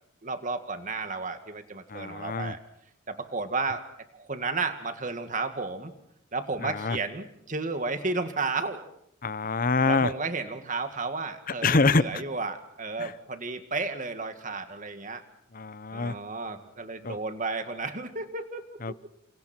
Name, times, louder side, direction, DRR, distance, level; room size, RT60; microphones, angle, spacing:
voice 1, 0.2-2.6 3.1-3.8 4.1-5.9 6.3-8.9 9.9-15.2 15.9-18.9, right 3 dB, 40° right, 8 dB, 2.0 m, -33 dB
voice 2, 1.9-2.5 6.6-7.0 9.2-10.1 11.6-12.2 13.0-13.1 15.5-16.2 17.0-17.2 18.8-18.9, left 4 dB, 45° left, 17 dB, 0.8 m, -26 dB
29.0 x 28.0 x 4.5 m, 0.74 s
head